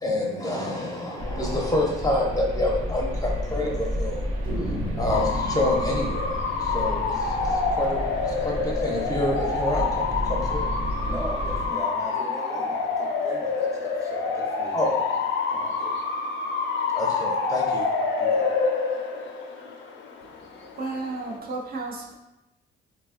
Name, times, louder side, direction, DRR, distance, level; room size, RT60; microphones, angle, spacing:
voice 1, 0.0-4.3 5.0-8.0 8.4-10.7 14.7-15.0 16.9-17.9, left 1 dB, 20° left, -2 dB, 0.5 m, -27 dB
sound 1, 1.2-11.7, equal, 85° right, 0.7 m, -31 dB
sound 2, 1.6-1.8 2.1-2.2 2.5-2.6 3.2-3.7 4.4-9.2, right 1 dB, 70° right, 1.3 m, -37 dB
Bark / Motor vehicle (road) / Siren, 5.1-21.4, left 4 dB, 70° left, 0.5 m, -27 dB
voice 2, 11.0-15.2 15.5-16.0 16.3-16.4 18.2-18.6, right 1 dB, 15° right, -2 dB, 0.8 m, -38 dB
voice 3, 20.2-22.1, right 3 dB, 50° right, -2 dB, 0.5 m, -34 dB
3.4 x 2.3 x 2.4 m, 0.97 s
cardioid pair, 90°, 20 cm